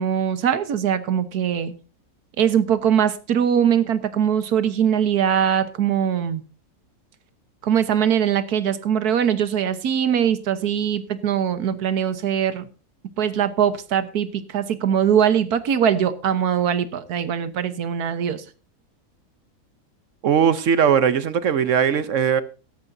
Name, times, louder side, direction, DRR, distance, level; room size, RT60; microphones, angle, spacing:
voice 1, 0.0-1.7 2.4-6.4 7.6-12.7 13.2-18.4, right 8 dB, 75° right, 1.6 m, -21 dB
voice 2, 20.2-22.4, right 7 dB, 60° right, 1.0 m, -19 dB
16.5 x 13.0 x 2.7 m
omnidirectional pair, 1.7 m